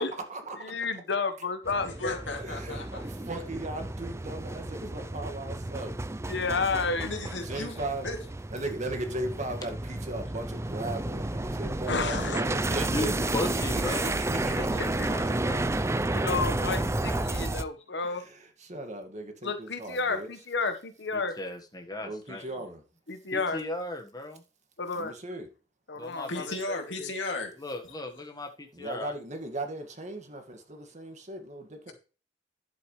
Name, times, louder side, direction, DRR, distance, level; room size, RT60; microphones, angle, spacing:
voice 1, 0.0-0.7 2.3-5.9 7.4-8.1 8.5-15.2 18.0-20.3 22.0-22.8 24.9-25.5 28.7-31.9, right 2 dB, 40° right, 1.9 m, -38 dB
voice 2, 0.6-2.2 2.7-2.8 6.2-7.1 11.9-12.4 14.8-15.2 16.1-18.2 19.4-21.3 23.1-23.6 24.8-25.1 25.9-27.1, left 4 dB, 65° left, 1.3 m, -31 dB
sound 1, 1.7-17.6, right 2 dB, 15° right, 0.5 m, -31 dB
voice 3, 1.8-3.0 7.0-8.2 22.3-22.4 26.3-27.5, left 2 dB, 85° left, 2.5 m, -35 dB
voice 4, 12.9-15.7 21.1-22.4 23.3-24.4 25.9-26.5 27.6-29.1, left 1 dB, 20° left, 1.5 m, -36 dB
11.0 x 7.9 x 3.3 m
head